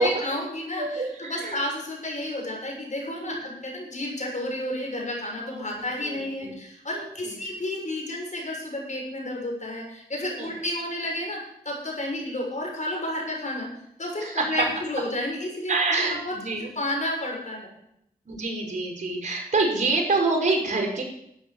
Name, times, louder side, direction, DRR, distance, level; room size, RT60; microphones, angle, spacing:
voice 1, 0.0-11.4 11.6-13.7 14.0-16.3 16.8-17.8, left 1 dB, 45° left, 0 dB, 6.5 m, -31 dB
voice 2, 0.8-1.6 3.3-3.4 5.4-6.5 6.9-7.4 10.4-10.6 14.2-14.7 15.7-16.7 18.3-21.0, right 3 dB, 50° right, 1 dB, 5.8 m, -27 dB
12.5 x 8.7 x 7.3 m, 0.76 s
cardioid pair, 45°, 16 cm